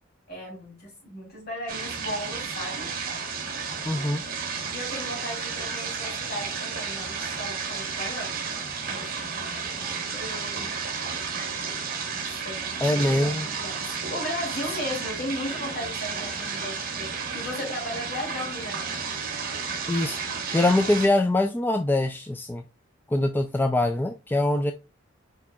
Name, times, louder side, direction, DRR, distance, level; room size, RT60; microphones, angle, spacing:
voice 1, 0.3-2.9 4.7-8.3 8.8-10.7 12.4-18.9, left 1 dB, 55° left, 2.9 m, -36 dB
sound 1, 1.7-21.1, right 5 dB, 45° right, 1.0 m, -32 dB
voice 2, 3.9-4.2 12.8-13.5 19.9-20.2 20.5-22.6 23.1-24.7, left 2 dB, 10° left, 0.3 m, -23 dB
4.9 x 4.6 x 2.3 m
head